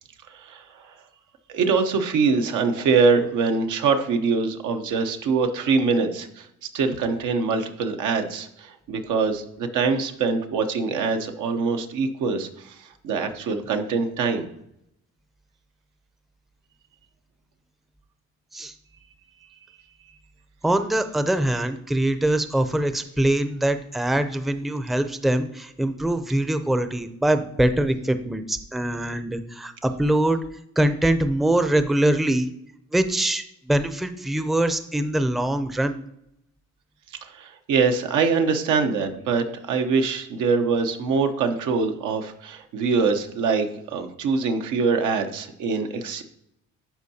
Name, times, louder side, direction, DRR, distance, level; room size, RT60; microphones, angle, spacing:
voice 1, 0.3-0.6 1.5-6.5 6.7-14.5 37.2-46.2, right 4 dB, 85° right, 5 dB, 0.9 m, -24 dB
voice 2, 20.6-30.4 30.8-32.5 32.9-36.0, right 1 dB, ahead, 9 dB, 0.5 m, -23 dB
11.5 x 4.5 x 2.8 m, 0.77 s
cardioid pair, 90°, 30 cm